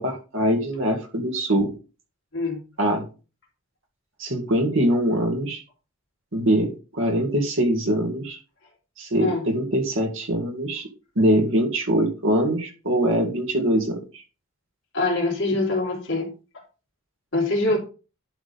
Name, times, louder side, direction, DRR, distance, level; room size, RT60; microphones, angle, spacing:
voice 1, 0.0-1.7 2.8-3.0 4.2-5.6 6.3-8.4 9.0-10.9 11.2-14.2, right 1 dB, 60° right, 3 dB, 2.1 m, -23 dB
voice 2, 14.9-16.3 17.3-17.8, left 2 dB, 55° left, -1 dB, 3.3 m, -23 dB
11.0 x 3.8 x 5.3 m, 0.33 s
head